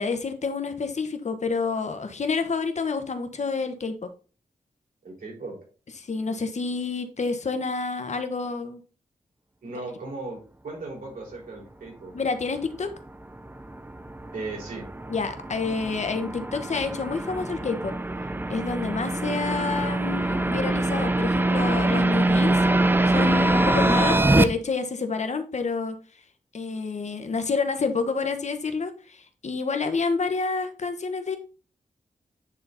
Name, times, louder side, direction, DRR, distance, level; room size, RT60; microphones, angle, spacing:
voice 1, 0.0-4.0 6.0-8.8 12.1-12.9 15.1-17.9 18.5-22.6 23.1-25.9 26.5-31.4, left 4 dB, 55° left, 7 dB, 1.2 m, -28 dB
voice 2, 5.0-5.6 9.6-10.4 10.6-12.1 14.3-14.9, right 3 dB, 85° right, -2 dB, 4.6 m, -37 dB
sound 1, 13.0-24.4, right 2 dB, 15° right, 0.7 m, -24 dB
9.6 x 4.2 x 4.1 m, 0.35 s
wide cardioid pair, 95°, 14 cm